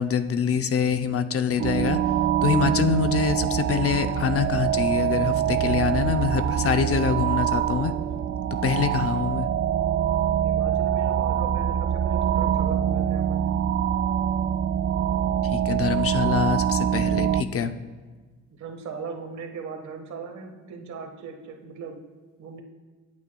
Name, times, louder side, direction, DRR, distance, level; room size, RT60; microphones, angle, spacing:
voice 1, 0.0-2.0 2.4-7.9 8.6-9.5 15.4-17.7, left 7 dB, 50° left, 9 dB, 0.7 m, -25 dB
sound 1, 1.6-17.4, right 9 dB, 50° right, 0.5 m, -24 dB
voice 2, 10.4-13.4 18.5-22.0 22.4-22.6, right 5 dB, 70° right, 4 dB, 1.5 m, -38 dB
21.0 x 8.4 x 2.3 m, 1.3 s
cardioid pair, 90°, 30 cm